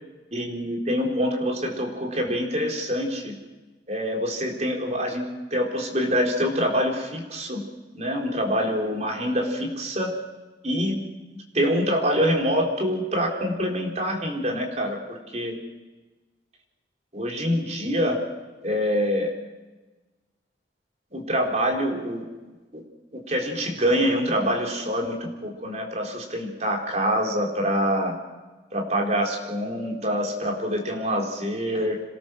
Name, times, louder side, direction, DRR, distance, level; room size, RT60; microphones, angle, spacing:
voice 1, 0.3-3.3 3.9-7.6 7.9-10.1 10.6-11.0 11.3-15.6 17.1-18.2 18.6-19.3 21.1-22.3 22.7-22.8 23.1-28.1 28.7-32.0, equal, 40° right, 0 dB, 4.0 m, -25 dB
26.5 x 19.5 x 6.3 m, 1.2 s
head